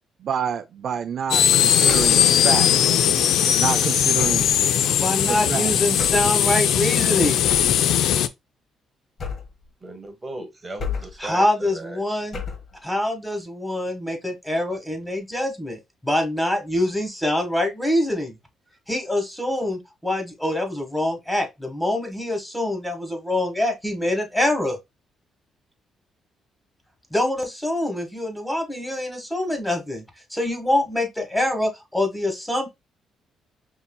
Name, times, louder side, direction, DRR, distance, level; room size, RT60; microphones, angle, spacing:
voice 1, 0.2-3.0 3.5-4.5 5.5-5.7, right 7 dB, 60° right, 0.4 m, -28 dB
sound 1, 1.3-8.3, left 10 dB, 80° left, 0.3 m, -19 dB
sound 2, 1.9-2.3 4.2-4.6 6.0-6.4 7.5-7.9 9.2-9.7 10.8-11.3 12.3-12.8, left 5 dB, 50° left, 1.5 m, -32 dB
voice 2, 5.0-7.4 11.2-12.4 12.8-18.4 18.9-24.8 27.1-30.0 30.3-32.7, left 1 dB, 5° left, 1.4 m, -25 dB
voice 3, 9.8-12.0, right 2 dB, 20° right, 1.2 m, -37 dB
5.4 x 2.8 x 2.2 m
cardioid pair, 90°, 0 cm